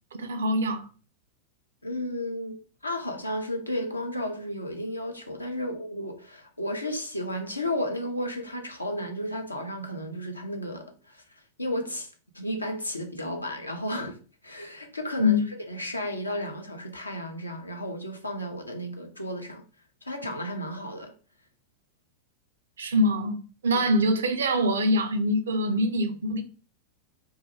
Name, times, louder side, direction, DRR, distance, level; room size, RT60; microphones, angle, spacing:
voice 1, 0.2-0.9 15.2-15.4 22.8-26.4, left 1 dB, 65° right, 0.4 m, -24 dB
voice 2, 1.8-11.2 11.6-12.1 12.3-14.2 14.4-15.4 15.7-19.6 20.0-21.1 23.7-23.9, left 1 dB, 85° left, 0.5 m, -33 dB
2.2 x 2.2 x 3.0 m
figure-of-eight pair, 90°, 0 cm